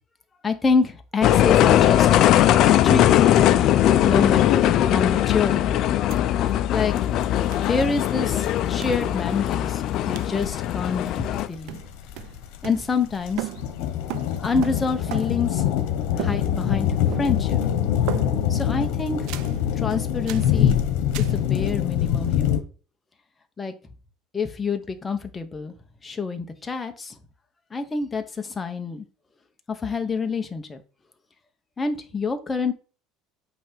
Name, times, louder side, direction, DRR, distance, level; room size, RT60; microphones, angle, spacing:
voice 1, 0.4-2.1 2.8-6.0 6.7-7.1 7.7-11.8 12.6-13.5 14.4-15.9 16.2-17.6 18.5-19.3 19.8-20.8 21.2-22.5 23.6-23.7 24.3-25.7 26.0-27.1 27.7-29.0 29.8-30.8 31.8-32.7, left 4 dB, 15° left, 0.8 m, -27 dB
sound 1, 1.2-11.5, left 12 dB, 45° left, 0.5 m, -19 dB
sound 2, 6.1-6.2 6.5-6.6 7.5-7.7 8.8-9.1 10.1-10.4 11.1-11.4 11.7-13.1 13.4-15.5 16.2-16.8 17.1-17.6 18.1-18.6 19.3-19.6 20.3-20.6 21.1-21.4, right 14 dB, 65° right, 0.4 m, -36 dB
sound 3, 7.0-7.1 7.2-22.6, left 10 dB, 70° left, 1.1 m, -24 dB
8.5 x 3.4 x 5.2 m
cardioid pair, 160°, 0 cm